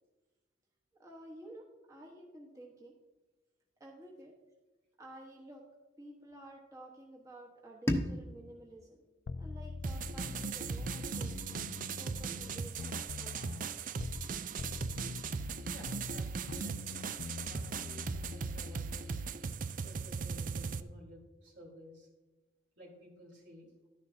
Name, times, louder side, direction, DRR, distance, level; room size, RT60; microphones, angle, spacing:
voice 1, 1.0-2.9 3.8-4.3 5.0-5.6 6.0-9.0 9.4-11.6 12.0-13.5, right 1 dB, 20° right, -2 dB, 1.2 m, -52 dB
sound 1, 7.9-10.8, equal, 15° left, 1.0 m, -38 dB
sound 2, 9.3-14.3 14.6-19.4, left 4 dB, 60° left, 0.4 m, -44 dB
sound 3, 9.8-20.8, right 5 dB, 45° right, 0.4 m, -39 dB
voice 2, 15.4-19.1 19.8-22.1 22.8-23.7, left 1 dB, 75° right, -2 dB, 3.4 m, -55 dB
12.0 x 10.5 x 2.7 m, 1.2 s
head